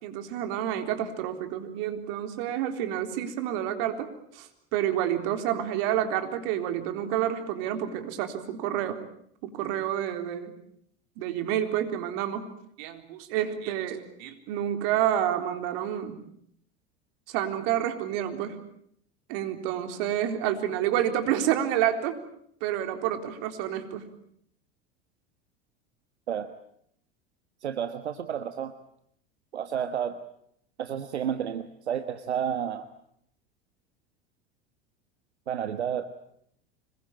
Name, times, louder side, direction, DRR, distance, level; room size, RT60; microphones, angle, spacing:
voice 1, 0.0-4.1 4.3-9.0 9.4-10.5 11.2-12.5 12.8-16.2 17.3-18.6 19.3-22.2 22.6-24.1, right 11 dB, 60° right, 7 dB, 3.9 m, -29 dB
voice 2, 27.6-28.7 29.5-30.2 30.8-32.9 35.5-36.1, right 8 dB, 85° right, 10 dB, 1.4 m, -31 dB
26.0 x 21.5 x 8.8 m, 0.70 s
hypercardioid pair, 80°, 32 cm